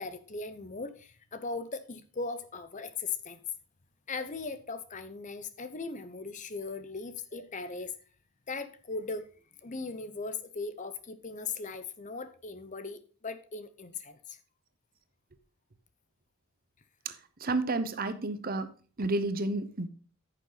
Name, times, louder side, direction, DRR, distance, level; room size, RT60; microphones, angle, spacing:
voice 1, 0.0-3.4 4.1-7.9 8.5-9.3 9.6-14.4, left 4 dB, 35° left, 11 dB, 0.8 m, -38 dB
voice 2, 17.4-18.7 19.0-19.9, right 2 dB, 40° right, 11 dB, 0.8 m, -30 dB
9.8 x 6.7 x 4.0 m, 0.39 s
head